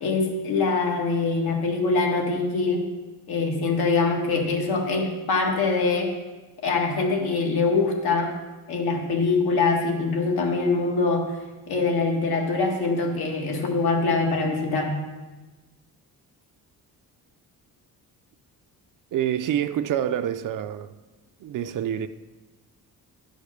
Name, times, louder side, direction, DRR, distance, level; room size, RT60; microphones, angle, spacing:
voice 1, 0.0-2.8 3.3-6.1 6.6-8.3 8.7-11.3 11.7-15.0, left 3 dB, 90° left, 1.8 m, -23 dB
voice 2, 19.1-20.9 21.4-22.1, right 10 dB, 60° right, 0.5 m, -27 dB
10.5 x 5.2 x 6.4 m
cardioid pair, 160°, 37 cm